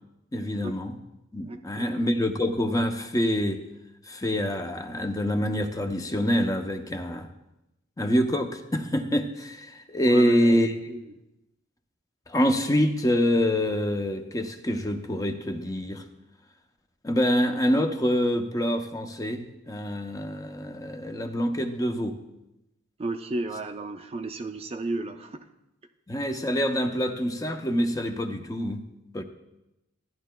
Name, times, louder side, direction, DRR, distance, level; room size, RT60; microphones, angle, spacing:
voice 1, 0.3-1.0 1.3-3.6 4.0-7.3 8.0-10.7 12.3-16.0 17.0-22.2 26.1-28.8 29.1-29.2, equal, 20° left, 6 dB, 0.5 m, -26 dB
voice 2, 1.4-2.0 10.0-11.0 23.0-25.5, right 2 dB, 30° right, 7 dB, 0.4 m, -34 dB
14.0 x 10.0 x 2.2 m, 0.92 s
head